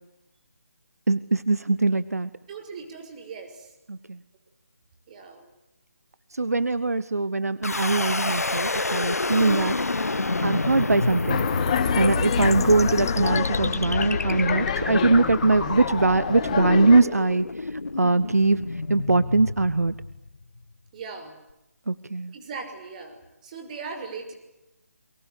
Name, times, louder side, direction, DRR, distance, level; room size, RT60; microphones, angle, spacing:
voice 1, 1.1-2.3 3.9-4.2 6.3-9.8 10.4-11.5 12.0-18.6 18.9-19.9 21.9-22.3, right 3 dB, 75° right, 16 dB, 1.1 m, -22 dB
voice 2, 2.5-3.7 5.1-5.5 20.9-21.3 22.3-24.3, right 4 dB, 30° right, 5 dB, 6.1 m, -39 dB
sound 1, 7.6-20.6, left 3 dB, 75° left, 1.5 m, -28 dB
sound 2, 11.3-17.0, left 9 dB, 25° left, 1.7 m, -28 dB
30.0 x 23.5 x 8.3 m, 0.90 s
figure-of-eight pair, 150°, 8 cm